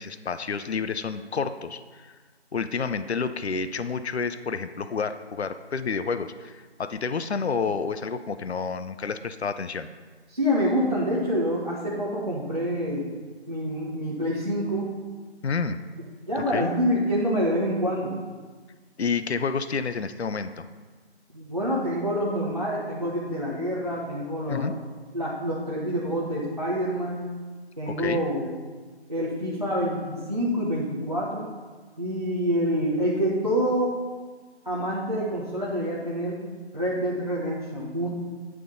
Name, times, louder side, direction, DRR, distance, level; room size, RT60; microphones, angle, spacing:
voice 1, 0.0-2.2 2.5-9.9 15.4-15.8 16.5-16.7 19.0-20.6 24.5-24.7 27.9-28.2, left 5 dB, 70° left, 11 dB, 0.5 m, -29 dB
voice 2, 10.3-13.1 13.5-14.9 16.3-18.2 21.3-24.7 25.1-27.3 27.8-28.5 29.1-31.5 32.0-34.0 34.6-36.4 36.7-38.1, equal, 35° right, -6 dB, 0.9 m, -27 dB
9.4 x 3.7 x 6.4 m, 1.4 s
figure-of-eight pair, 175°, 34 cm